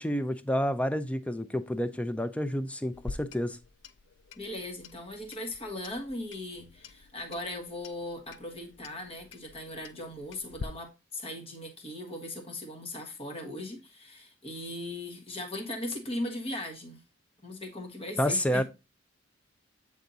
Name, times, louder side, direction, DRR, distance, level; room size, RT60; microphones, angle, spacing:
voice 1, 0.0-3.6 18.2-18.6, equal, 5° left, 0.4 m, -29 dB
Clock, 2.9-10.6, left 4 dB, 65° left, 0.4 m, -47 dB
voice 2, 4.4-17.0 17.4-18.6, left 1 dB, 30° left, 1.3 m, -38 dB
8.1 x 3.6 x 3.9 m
head